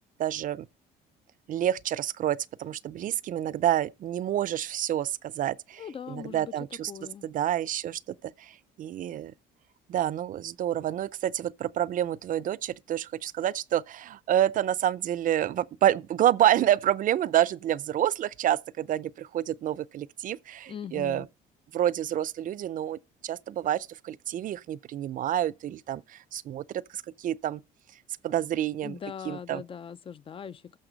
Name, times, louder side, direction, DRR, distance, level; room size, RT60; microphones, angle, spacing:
voice 1, 0.2-0.7 1.5-6.9 7.2-9.3 9.9-21.3 21.7-27.6 28.2-29.0 29.3-29.6, right 11 dB, 50° right, 0.5 m, -28 dB
voice 2, 5.8-6.5 6.9-7.3 20.7-21.2 28.8-30.8, left 8 dB, 30° left, 0.4 m, -40 dB
14.0 x 5.8 x 3.9 m
cardioid pair, 110°, 17 cm